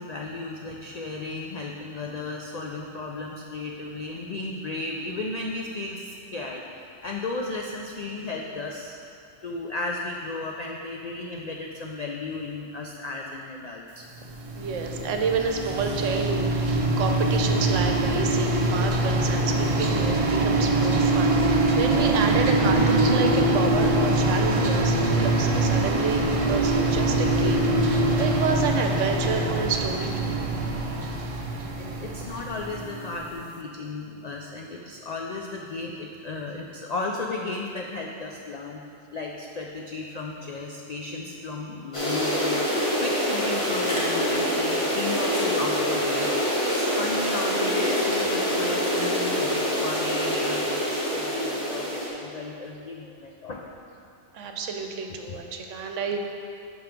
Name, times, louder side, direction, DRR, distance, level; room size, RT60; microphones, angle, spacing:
voice 1, 0.0-9.0 9.4-14.1 31.8-38.8 39.1-46.3 46.7-53.7 55.3-55.4, left 3 dB, 85° left, 0 dB, 0.3 m, -34 dB
sound 1, 14.2-33.2, right 2 dB, 45° right, 0.4 m, -23 dB
voice 2, 14.5-30.4 54.3-56.2, right 4 dB, 75° right, 4 dB, 1.0 m, -29 dB
sound 2, 41.9-52.1, equal, 25° left, 1.4 m, -25 dB
5.8 x 5.6 x 5.1 m, 2.5 s
omnidirectional pair, 1.3 m